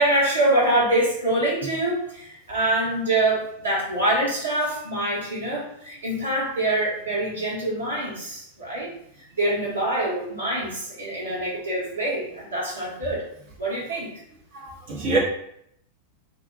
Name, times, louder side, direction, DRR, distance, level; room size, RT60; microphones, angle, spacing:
voice 1, 0.0-8.9 9.4-13.2 13.6-14.1, right 1 dB, 75° right, -6 dB, 1.2 m, -25 dB
voice 2, 14.5-15.2, right 3 dB, 50° right, -6 dB, 0.8 m, -26 dB
2.7 x 2.1 x 3.9 m, 0.72 s
figure-of-eight pair, 90°, 0 cm